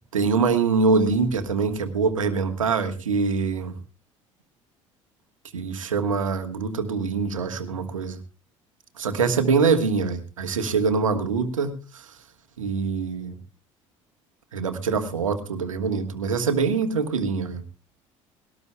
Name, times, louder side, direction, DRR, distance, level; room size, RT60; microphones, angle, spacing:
voice 1, 0.1-3.7 5.5-8.2 9.0-12.2 12.6-13.4 14.5-17.6, right 5 dB, 80° right, 7 dB, 1.4 m, -24 dB
20.5 x 18.0 x 2.3 m, 0.32 s
figure-of-eight pair, 60°, 17 cm